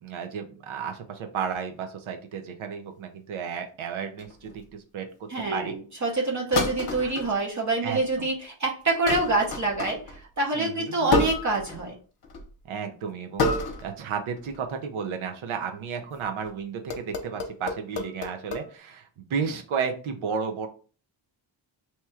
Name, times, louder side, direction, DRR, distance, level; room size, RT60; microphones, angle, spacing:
voice 1, 0.0-5.7 7.0-7.2 7.8-8.3 10.5-11.1 12.6-13.5 13.8-20.7, right 6 dB, 80° right, 5 dB, 0.7 m, -33 dB
sound 1, 4.2-4.6 6.5-7.3 7.9-8.3 9.1-10.2 11.1-11.9 12.2-12.5 13.4-14.0 14.3-14.6 16.2-16.5 16.9-18.6, left 3 dB, 55° left, 0.9 m, -29 dB
voice 2, 5.3-12.0, right 2 dB, 40° right, -2 dB, 0.8 m, -26 dB
2.9 x 2.3 x 4.3 m, 0.38 s
wide cardioid pair, 155°, 48 cm